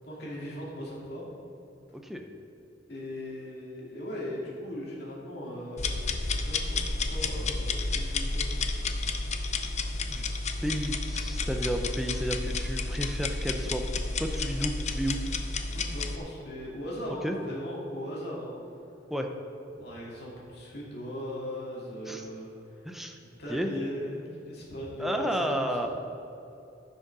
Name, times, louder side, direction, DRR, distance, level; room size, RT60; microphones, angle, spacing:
voice 1, 0.1-1.3 2.9-8.7 15.7-18.5 19.7-25.9, equal, 60° left, -5 dB, 2.8 m, -39 dB
voice 2, 1.9-2.3 10.1-10.2 10.6-13.8 14.2-15.2 17.2-17.4 19.1-19.3 22.1-22.3 22.8-23.2 23.5-23.7 25.0-25.9, equal, ahead, 3 dB, 0.7 m, -32 dB
sound 1, 5.8-16.2, left 3 dB, 40° left, 0.6 m, -31 dB
14.0 x 6.3 x 5.5 m, 2.8 s
head